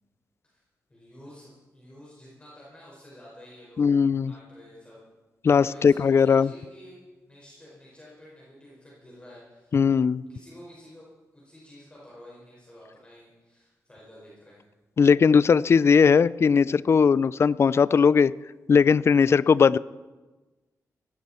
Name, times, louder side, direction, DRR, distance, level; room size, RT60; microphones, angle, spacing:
voice 1, 0.9-3.9 4.2-5.0 5.4-9.8 10.1-11.1 11.3-14.6, left 1 dB, 20° left, -6 dB, 5.1 m, -50 dB
voice 2, 3.8-4.3 5.4-6.5 9.7-10.2 15.0-18.3 18.7-19.8, left 6 dB, 45° left, 19 dB, 0.4 m, -19 dB
18.5 x 16.0 x 4.3 m, 1.2 s
wide cardioid pair, 130°, 6 cm